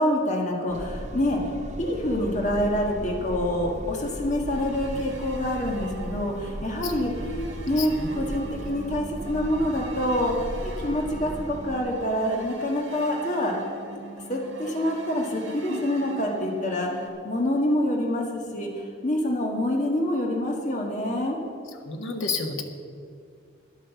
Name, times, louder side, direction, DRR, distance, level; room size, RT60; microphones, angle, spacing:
voice 1, 0.0-1.4 1.8-7.1 7.7-10.3 10.6-13.5 14.3-16.9 17.2-21.4, left 1 dB, 40° left, -1 dB, 1.6 m, -26 dB
sound 1, 0.7-11.8, right 1 dB, 40° right, 0.9 m, -37 dB
sound 2, 4.5-17.1, right 4 dB, 90° right, 2.0 m, -43 dB
voice 2, 7.8-8.2 15.7-15.8 21.8-22.6, left 4 dB, 85° left, 3 dB, 1.4 m, -31 dB
11.0 x 9.9 x 7.0 m, 2.4 s
head